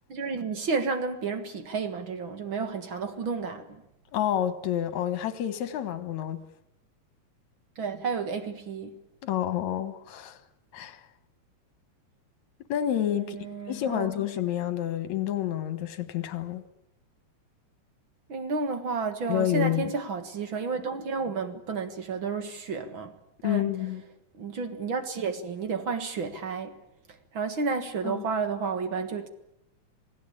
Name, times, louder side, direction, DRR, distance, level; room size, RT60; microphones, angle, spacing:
voice 1, 0.1-3.8 7.8-9.0 13.2-14.1 18.3-23.2 23.4-23.8 24.3-26.8 27.3-29.3, right 4 dB, 50° right, 2.1 m, -31 dB
voice 2, 4.1-6.4 9.2-10.4 10.7-11.0 12.7-13.4 13.7-16.6 19.3-19.9 23.4-24.0 28.0-28.2, left 11 dB, 75° left, 2.7 m, -29 dB
28.0 x 17.5 x 8.6 m
omnidirectional pair, 3.3 m